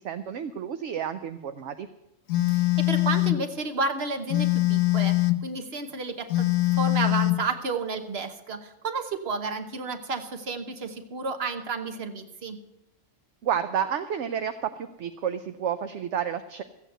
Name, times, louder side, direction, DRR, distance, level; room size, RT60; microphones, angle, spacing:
voice 1, 0.0-1.9 13.4-16.6, right 8 dB, 70° right, 9 dB, 0.9 m, -30 dB
Telephone, 2.3-3.4 4.3-5.5 6.3-7.5, left 18 dB, 85° left, 1.0 m, -23 dB
voice 2, 2.5-6.5 6.8-12.6, right 4 dB, 55° right, 8 dB, 1.3 m, -31 dB
14.0 x 8.2 x 7.8 m, 0.90 s
omnidirectional pair, 1.3 m